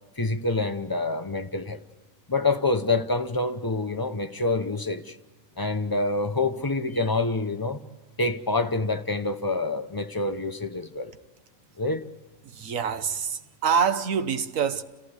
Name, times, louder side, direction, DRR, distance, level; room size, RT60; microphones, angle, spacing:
voice 1, 0.2-1.8 2.3-5.2 5.6-7.8 8.2-11.1 11.8-12.0, left 2 dB, 20° left, 0.7 m, -27 dB
voice 2, 12.4-14.8, right 6 dB, 70° right, 1.4 m, -26 dB
29.5 x 14.5 x 8.1 m
omnidirectional pair, 1.4 m